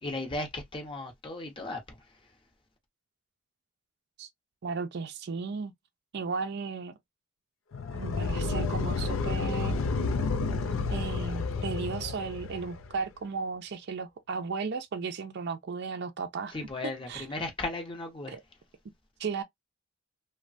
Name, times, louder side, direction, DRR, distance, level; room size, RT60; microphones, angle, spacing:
voice 1, 0.0-2.3 16.5-18.4, left 2 dB, 25° left, 0.8 m, -36 dB
voice 2, 4.6-5.7 6.1-6.9 7.9-9.8 10.9-16.6 17.1-17.3 18.3-18.4 19.2-19.4, right 5 dB, 55° right, 0.4 m, -35 dB
sound 1, 7.7-12.9, left 4 dB, 80° left, 0.4 m, -30 dB
3.1 x 2.1 x 2.5 m
head